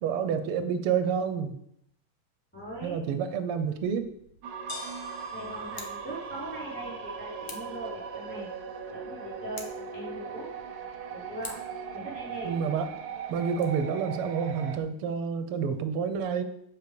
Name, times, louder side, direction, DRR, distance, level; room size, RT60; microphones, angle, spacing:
voice 1, 0.0-1.6 2.8-4.1 12.4-12.9 13.3-16.4, right 6 dB, 90° right, 9 dB, 1.7 m, -29 dB
voice 2, 2.5-3.0 5.3-8.5 8.9-10.6 11.1-11.7 11.9-12.6, right 1 dB, 5° left, -9 dB, 4.2 m, -40 dB
sound 1, 3.6-13.6, left 2 dB, 75° left, 3.2 m, -52 dB
sound 2, 4.4-14.8, right 6 dB, 60° right, 1.1 m, -39 dB
Scissors, 5.6-6.0 7.4-7.8 9.5-9.9 11.4-11.8 13.4-13.6, left 3 dB, 40° left, 1.2 m, -44 dB
8.1 x 5.3 x 6.8 m, 0.73 s
omnidirectional pair, 2.4 m